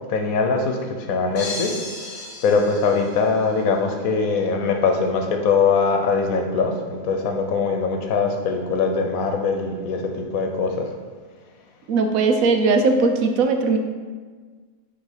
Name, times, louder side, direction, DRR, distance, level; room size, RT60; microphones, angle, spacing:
voice 1, 0.1-1.7 2.4-10.9, left 4 dB, 85° left, 4 dB, 1.2 m, -22 dB
sound 1, 1.4-3.6, left 2 dB, 40° left, 0.8 m, -34 dB
voice 2, 11.9-13.8, right 4 dB, 75° right, 5 dB, 1.1 m, -19 dB
6.1 x 3.2 x 5.6 m, 1.5 s
omnidirectional pair, 1.4 m